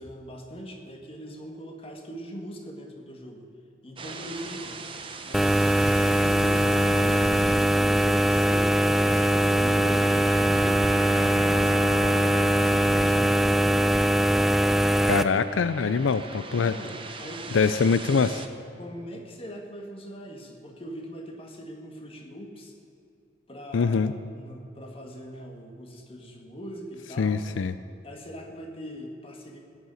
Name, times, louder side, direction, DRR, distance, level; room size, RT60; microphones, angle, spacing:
voice 1, 0.0-3.5 3.8-4.8 5.2-13.6 16.5-17.9 18.8-22.7 23.5-27.5 28.0-29.6, equal, 30° left, 2 dB, 1.7 m, -41 dB
sound 1, 4.0-18.5, right 4 dB, 25° right, 0.9 m, -42 dB
sound 2, 5.3-15.2, right 1 dB, ahead, 0.4 m, -21 dB
voice 2, 15.1-16.7 17.5-18.5 23.7-24.1 27.2-27.7, left 5 dB, 90° left, 13 dB, 0.5 m, -23 dB
16.0 x 6.7 x 8.9 m, 2.6 s
head